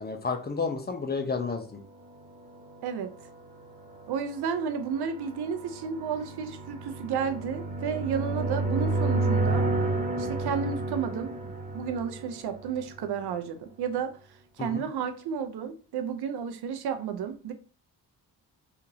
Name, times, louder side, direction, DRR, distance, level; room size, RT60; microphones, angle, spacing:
voice 1, 0.0-1.8 14.6-14.8, left 4 dB, 25° left, 0.5 m, -31 dB
sound 1, 2.3-13.1, right 2 dB, 20° right, 0.9 m, -31 dB
voice 2, 4.1-9.7 10.2-14.1 14.6-17.5, right 7 dB, 65° right, 0.6 m, -32 dB
2.9 x 2.5 x 2.6 m
cardioid pair, 60°, 41 cm